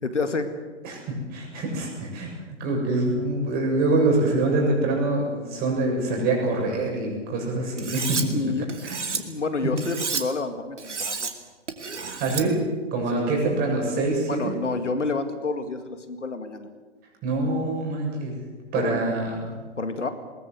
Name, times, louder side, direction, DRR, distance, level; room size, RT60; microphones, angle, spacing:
voice 1, 0.0-0.6 8.3-8.7 9.1-11.3 13.1-13.4 14.3-16.7 18.7-19.1 19.8-20.1, left 3 dB, 80° left, 9 dB, 2.2 m, -29 dB
voice 2, 0.8-2.3 2.6-8.3 8.8-9.0 12.2-12.6 12.9-14.5 17.2-18.4 18.7-19.4, right 2 dB, 25° right, 0 dB, 7.1 m, -25 dB
Cutlery silverware, 7.8-8.2 8.7-9.2 9.8-10.2 10.8-11.3 11.7-12.4, right 5 dB, 75° right, 2.4 m, -30 dB
21.0 x 19.5 x 7.9 m, 1.4 s
figure-of-eight pair, 125°, 36 cm